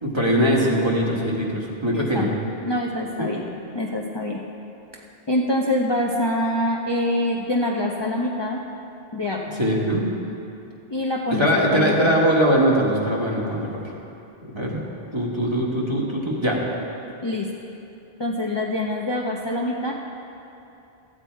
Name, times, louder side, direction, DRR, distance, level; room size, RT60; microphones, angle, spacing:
voice 1, 0.0-2.3 3.2-3.3 9.6-10.1 11.4-13.7 14.5-14.8 15.1-16.6, equal, 25° right, -3 dB, 1.5 m, -21 dB
voice 2, 1.9-2.3 2.6-3.4 3.7-4.4 5.3-8.6 9.1-9.4 10.9-12.1 17.2-17.5 18.2-19.9, left 1 dB, 30° left, -2 dB, 0.6 m, -25 dB
13.5 x 8.9 x 4.5 m, 2.8 s
omnidirectional pair, 1.0 m